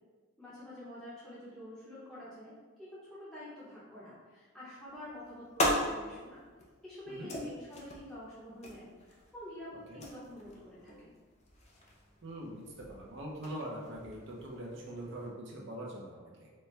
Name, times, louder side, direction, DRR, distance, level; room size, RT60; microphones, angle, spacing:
voice 1, 0.4-2.5 2.8-6.4 6.8-11.2, left 1 dB, 5° left, -11 dB, 0.8 m, -48 dB
sound 1, 4.9-15.3, left 1 dB, 30° left, 0.5 m, -40 dB
voice 2, 12.2-16.5, right 1 dB, 60° right, -2 dB, 0.7 m, -43 dB
4.2 x 2.2 x 3.2 m, 1.4 s
head